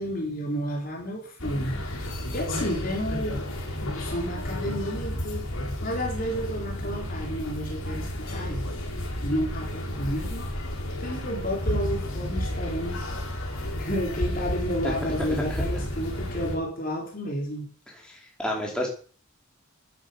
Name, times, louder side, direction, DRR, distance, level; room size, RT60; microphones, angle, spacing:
voice 1, 0.0-3.4 3.9-5.5 5.8-8.7 9.2-10.5 11.0-13.0 13.3-13.4 13.8-17.7, equal, 40° left, 0 dB, 3.9 m, -31 dB
sound 1, 1.4-16.6, left 1 dB, 70° left, 5.1 m, -32 dB
voice 2, 18.1-18.9, left 1 dB, 5° left, -2 dB, 4.6 m, -30 dB
12.5 x 10.5 x 7.0 m, 0.42 s
head